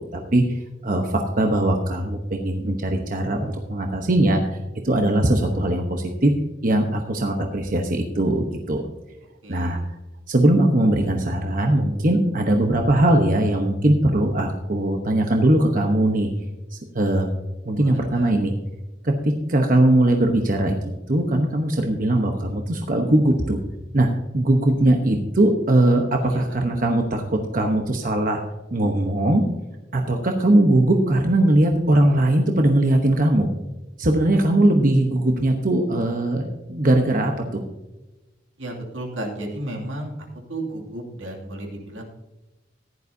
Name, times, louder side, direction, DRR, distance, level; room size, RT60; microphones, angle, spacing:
voice 1, 0.0-4.4 4.8-6.3 6.6-8.8 9.5-9.8 10.3-16.3 16.7-17.3 17.7-18.5 19.0-20.8 21.1-23.6 23.9-24.1 24.3-28.4 28.7-29.4 29.9-33.5 34.0-37.6, right 1 dB, 45° right, 3 dB, 0.9 m, -20 dB
voice 2, 9.4-9.8 17.7-18.3 26.2-26.6 38.6-42.0, right 1 dB, 80° right, 0 dB, 2.5 m, -34 dB
15.0 x 11.0 x 2.7 m, 1.1 s
head